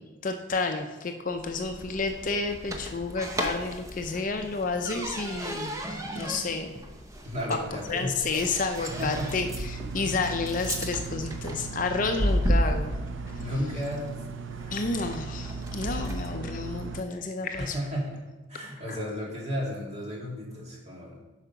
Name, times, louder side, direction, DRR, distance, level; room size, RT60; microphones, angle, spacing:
voice 1, 0.2-5.7 6.1-6.7 7.5-12.9 14.7-17.8 18.9-19.0, left 3 dB, 40° left, 5 dB, 0.5 m, -30 dB
sound 1, 1.3-16.4, equal, 15° right, 0.7 m, -34 dB
voice 2, 7.2-8.2 8.8-9.3 10.0-10.2 13.4-14.2 14.5-14.7 17.6-18.2 18.5-21.2, equal, 30° right, -3 dB, 2.0 m, -34 dB
sound 2, 8.9-17.0, right 4 dB, 70° right, 0.5 m, -38 dB
8.1 x 5.0 x 5.7 m, 1.1 s
head